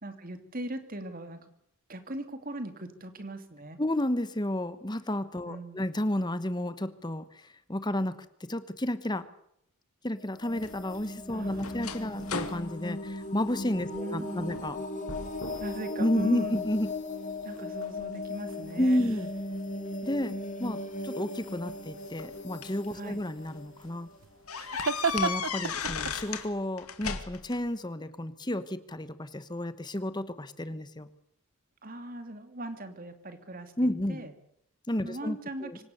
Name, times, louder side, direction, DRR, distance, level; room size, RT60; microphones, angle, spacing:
voice 1, 0.0-1.5 1.9-3.8 5.4-5.8 11.3-12.3 13.9-14.6 15.6-16.7 17.4-19.0 22.9-23.2 31.8-34.3 35.0-35.7, right 1 dB, 40° right, 8 dB, 2.6 m, -39 dB
voice 2, 3.8-8.2 8.5-9.3 10.0-14.8 16.0-16.9 18.8-19.3 20.0-24.1 25.1-31.1 33.8-34.3 34.9-35.8, left 1 dB, 20° left, 13 dB, 1.1 m, -31 dB
sound 1, 10.2-24.9, left 2 dB, 35° left, 2.6 m, -38 dB
sound 2, 10.6-14.0 14.4-14.8 15.1-15.8 16.2-16.9 17.5-19.0 20.1-20.2 21.4-22.9 23.4-23.5 23.8-23.9 24.5-26.5 26.8-27.6, left 6 dB, 80° left, 2.3 m, -37 dB
sound 3, 18.5-19.5 23.3-26.5, right 5 dB, 65° right, 0.9 m, -35 dB
25.5 x 17.0 x 6.9 m, 0.74 s
head